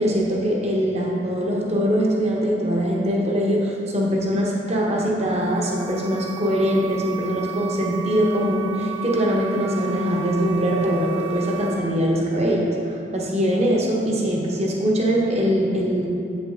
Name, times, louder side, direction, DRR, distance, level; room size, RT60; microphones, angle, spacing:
voice 1, 0.0-16.1, equal, 35° right, -2 dB, 1.2 m, -22 dB
sound 1, 5.3-11.8, right 13 dB, 70° left, 1.1 m, -35 dB
Wind instrument woodwind instrument, 7.5-11.8, right 1 dB, ahead, 0.7 m, -36 dB
7.8 x 7.7 x 3.7 m, 2.7 s
head